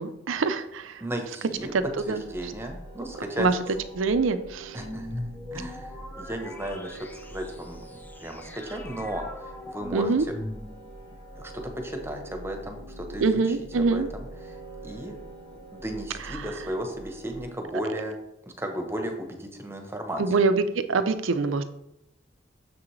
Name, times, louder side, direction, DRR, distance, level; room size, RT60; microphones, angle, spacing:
voice 1, 0.0-1.0 1.7-1.8 2.1-2.2 3.4-3.6 3.9-4.8 9.9-10.3 13.2-14.1 16.3-16.5 20.2-21.6, right 4 dB, 75° right, 11 dB, 0.5 m, -24 dB
voice 2, 1.0-1.7 2.0-3.5 4.7-5.3 5.5-7.0 7.3-10.1 11.4-14.6 14.8-15.2 15.7-18.2 18.6-20.2, right 1 dB, 15° right, 4 dB, 0.9 m, -35 dB
sound 1, 1.5-17.5, right 1 dB, 55° left, 2.6 m, -44 dB
sound 2, 4.8-11.1, left 1 dB, 10° left, 0.6 m, -40 dB
6.9 x 6.0 x 3.2 m, 0.82 s
head